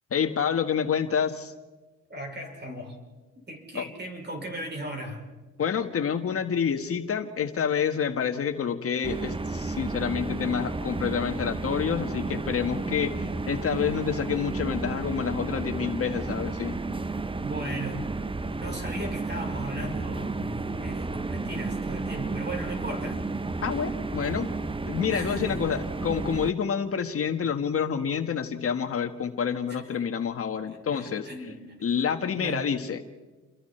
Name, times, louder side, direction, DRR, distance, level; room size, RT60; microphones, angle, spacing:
voice 1, 0.1-1.5 3.7-3.9 5.6-16.8 23.6-24.5 24.9-31.3 31.8-33.0, left 7 dB, 50° left, 7 dB, 1.5 m, -28 dB
voice 2, 2.1-3.0 3.5-5.2 17.4-18.1 18.5-23.2 25.1-25.6 29.7-30.0 30.6-31.8 32.4-32.7, right 1 dB, 35° right, 3 dB, 5.7 m, -37 dB
sound 1, 9.0-26.5, right 3 dB, 15° right, 0.8 m, -32 dB
29.0 x 23.5 x 4.5 m, 1.2 s
cardioid pair, 90°, 30 cm